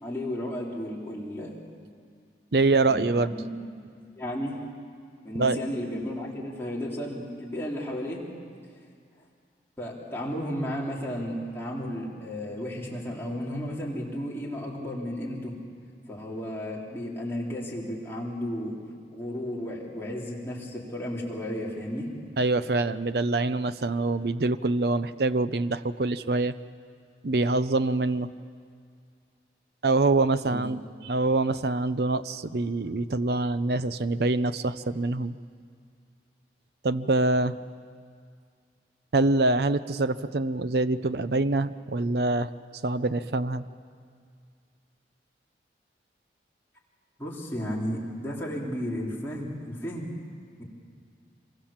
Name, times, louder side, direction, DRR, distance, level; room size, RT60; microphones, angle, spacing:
voice 1, 0.0-1.6 2.9-3.5 4.2-4.6 5.2-8.2 9.8-15.5 16.1-18.7 19.1-22.1 30.4-30.6 47.2-50.1, equal, 15° left, -5 dB, 4.0 m, -33 dB
voice 2, 2.5-3.3 5.4-5.6 22.4-26.5 27.2-28.3 29.8-35.4 36.8-37.6 39.1-42.5 42.8-43.6, right 2 dB, 65° right, 13 dB, 0.6 m, -25 dB
26.0 x 23.5 x 7.3 m, 2.2 s
head